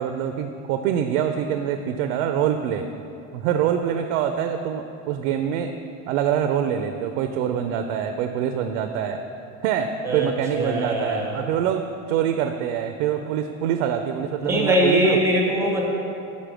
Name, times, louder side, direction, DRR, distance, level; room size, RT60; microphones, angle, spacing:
voice 1, 0.0-2.9 3.3-5.7 6.1-9.2 9.6-15.2, right 9 dB, 90° right, 7 dB, 0.5 m, -25 dB
voice 2, 10.0-11.5 14.4-15.8, equal, 5° right, -1 dB, 0.6 m, -22 dB
5.4 x 5.0 x 6.1 m, 2.6 s
cardioid pair, 170°, 38 cm